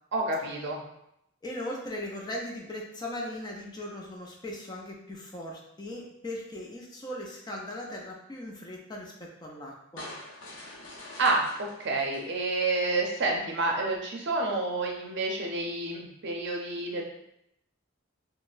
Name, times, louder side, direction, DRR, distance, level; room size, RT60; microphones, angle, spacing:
voice 1, 0.1-0.8 11.2-17.0, right 2 dB, 60° right, 1 dB, 0.5 m, -29 dB
voice 2, 1.4-10.1, left 1 dB, 20° left, -1 dB, 0.4 m, -38 dB
sound 1, 10.0-13.2, left 1 dB, 70° left, 0.6 m, -46 dB
4.0 x 2.0 x 2.4 m, 0.79 s
head